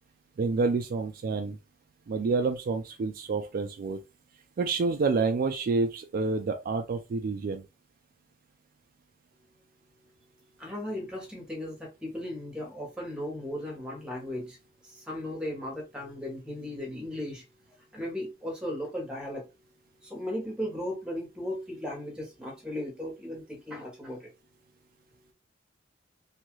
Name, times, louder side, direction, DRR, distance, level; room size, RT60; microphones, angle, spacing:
voice 1, 0.4-1.6 2.1-4.0 4.6-7.6, right 4 dB, 50° right, 0.3 m, -28 dB
voice 2, 10.6-14.6 14.8-17.4 17.9-19.5 20.0-24.3, left 1 dB, 5° right, 0.9 m, -36 dB
2.7 x 2.3 x 3.0 m
head